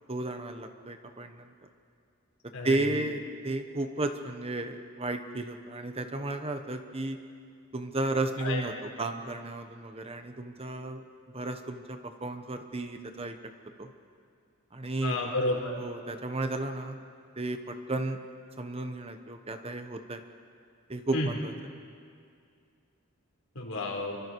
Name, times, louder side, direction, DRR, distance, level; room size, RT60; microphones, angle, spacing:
voice 1, 0.1-1.5 2.6-7.2 7.7-11.0 11.3-13.3 13.8-13.9 14.7-15.2 15.7-17.0 17.4-18.2 18.6-20.2 20.9-21.5, right 2 dB, 25° right, 7 dB, 1.2 m, -33 dB
voice 2, 2.5-2.9 8.4-8.6 15.0-15.7 21.1-21.3 23.5-24.2, left 2 dB, 75° left, -1 dB, 4.8 m, -31 dB
29.0 x 24.5 x 4.8 m, 2.3 s
head